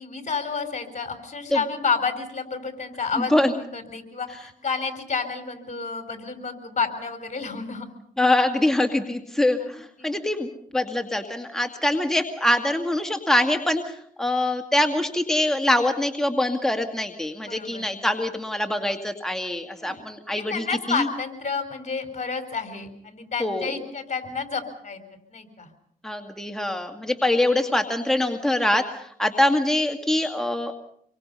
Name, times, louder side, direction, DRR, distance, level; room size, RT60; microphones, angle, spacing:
voice 1, 0.0-7.9 9.6-9.7 10.0-10.2 17.4-17.9 19.8-20.0 20.3-25.0 25.3-25.7, left 5 dB, 50° left, 7 dB, 4.5 m, -30 dB
voice 2, 3.2-3.5 8.2-21.1 23.4-23.7 26.0-30.7, left 1 dB, 5° left, 5 dB, 2.1 m, -24 dB
26.5 x 23.5 x 5.6 m, 0.66 s
cardioid pair, 60°, 15 cm